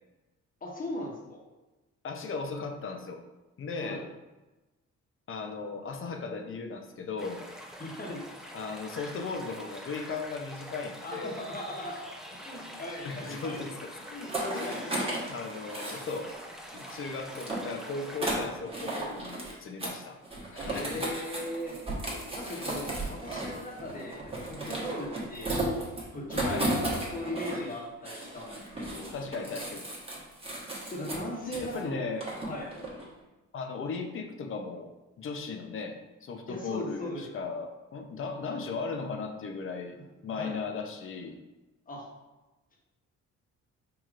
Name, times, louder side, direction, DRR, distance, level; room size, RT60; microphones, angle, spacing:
voice 1, 0.6-1.4 3.8-4.0 7.8-8.3 11.0-12.0 12.3-13.7 14.1-15.2 20.7-21.7 22.3-25.6 26.1-29.1 30.9-32.0 32.4-32.7 36.5-37.2 40.3-40.6 41.9-42.1, left 1 dB, 30° left, -2 dB, 1.2 m, -38 dB
voice 2, 2.0-3.2 3.6-4.0 5.3-7.4 8.5-11.3 13.0-13.9 14.5-14.8 15.3-16.3 16.7-20.2 20.5-21.1 22.5-22.8 26.4-26.7 29.1-29.8 31.6-32.3 33.5-34.9 35.2-40.0 40.2-41.4, left 4 dB, 45° left, 5 dB, 0.6 m, -37 dB
sound 1, 7.2-18.2, equal, ahead, 0.6 m, -45 dB
sound 2, 14.1-16.4 16.7-19.5 19.8-20.0 20.2-27.7 28.0-31.8 32.2-33.1, right 1 dB, 20° right, 1.1 m, -35 dB
4.7 x 2.9 x 2.4 m, 1.1 s
cardioid pair, 90°, 30 cm